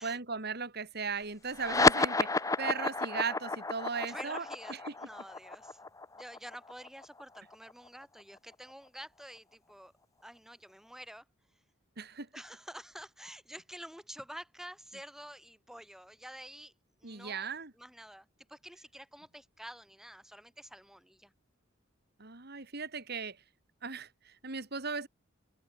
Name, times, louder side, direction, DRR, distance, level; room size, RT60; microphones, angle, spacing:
voice 1, 0.0-4.4 4.9-5.0 12.0-12.3 17.0-17.7 22.2-23.4 23.8-25.1, right 5 dB, 55° right, 3.0 m, -37 dB
sound 1, 1.5-8.4, left 3 dB, 15° left, 1.0 m, -31 dB
voice 2, 4.1-5.8 6.1-9.9 10.2-11.3 12.3-16.7 17.0-21.3, equal, ahead, 4.6 m, -49 dB
head